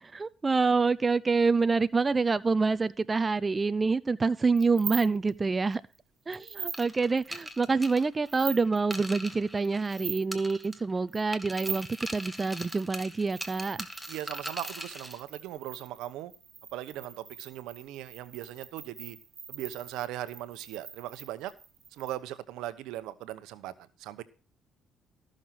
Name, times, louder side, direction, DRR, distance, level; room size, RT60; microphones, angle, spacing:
voice 1, 0.0-5.8 6.3-13.9, right 4 dB, 30° right, 0.6 m, -27 dB
sound 1, 4.6-5.3 5.7-6.0 6.3-6.8 7.2-8.0 8.3-8.9 9.6-10.2 10.5-10.7 11.1-12.8 13.3-22.1, right 6 dB, 45° right, 1.8 m, -42 dB
sound 2, 6.7-10.0 10.3-11.0 11.3-15.2, equal, ahead, 1.9 m, -41 dB
voice 2, 14.1-16.3 16.7-19.2 19.5-21.5 21.9-23.7 24.0-24.2, right 13 dB, 85° right, 1.0 m, -39 dB
14.0 x 6.5 x 5.8 m
supercardioid pair, 80°, 0 cm